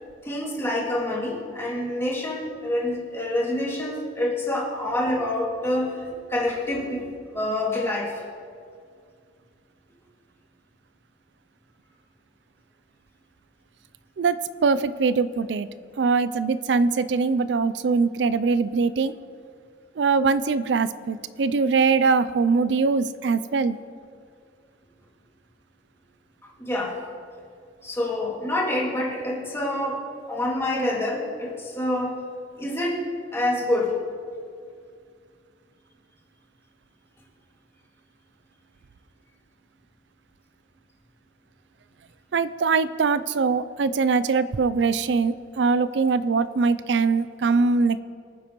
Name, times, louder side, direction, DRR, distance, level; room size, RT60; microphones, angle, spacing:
voice 1, 0.2-8.2 26.6-27.0 27.8-32.2 32.5-33.0 33.3-34.0, left 1 dB, 15° left, -4 dB, 2.2 m, -27 dB
voice 2, 14.2-15.7 16.0-19.1 20.0-23.8 42.3-48.0, right 4 dB, 90° right, 15 dB, 0.4 m, -22 dB
24.5 x 9.4 x 3.0 m, 2.2 s
head